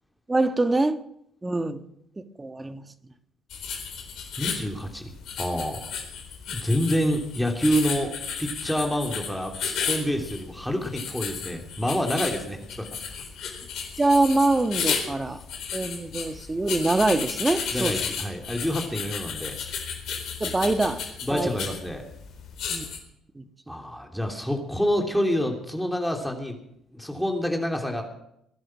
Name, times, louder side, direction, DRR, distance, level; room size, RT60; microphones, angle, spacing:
voice 1, 0.3-1.0 1.4-1.8 2.4-2.8 14.0-15.4 15.7-18.0 20.4-21.0 21.3-21.5 22.7-22.8 23.4-23.5, right 2 dB, 20° right, 9 dB, 1.5 m, -24 dB
sound 1, 3.5-23.0, left 6 dB, 65° left, 4.1 m, -33 dB
voice 2, 4.4-5.1 5.4-5.9 6.5-12.9 17.7-19.6 21.2-22.0 23.7-26.6 26.9-28.0, equal, ahead, 2 dB, 3.1 m, -27 dB
20.5 x 11.0 x 6.2 m, 0.76 s
supercardioid pair, 65°, 0 cm